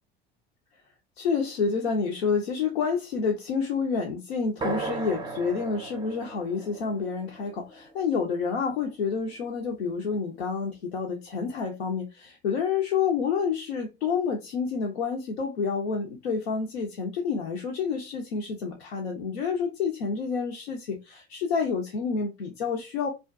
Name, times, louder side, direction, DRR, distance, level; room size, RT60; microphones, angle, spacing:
voice 1, 1.2-23.1, left 5 dB, 90° left, 0.5 m, -29 dB
sound 1, 4.6-8.5, right 3 dB, 15° right, 0.4 m, -37 dB
2.4 x 2.3 x 2.4 m
hypercardioid pair, 65°, 31 cm